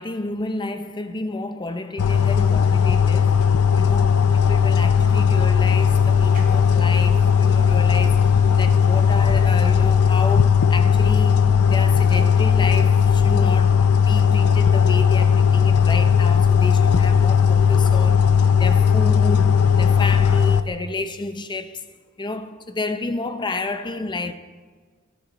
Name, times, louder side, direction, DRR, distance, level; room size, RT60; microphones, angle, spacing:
voice 1, 0.0-3.4 3.8-21.9 22.2-24.3, left 2 dB, 20° left, 0.6 m, -31 dB
sound 1, 2.0-20.6, left 7 dB, 80° left, 0.5 m, -17 dB
sound 2, 4.3-9.9, right 1 dB, 40° right, 2.4 m, -42 dB
19.0 x 8.1 x 4.1 m
head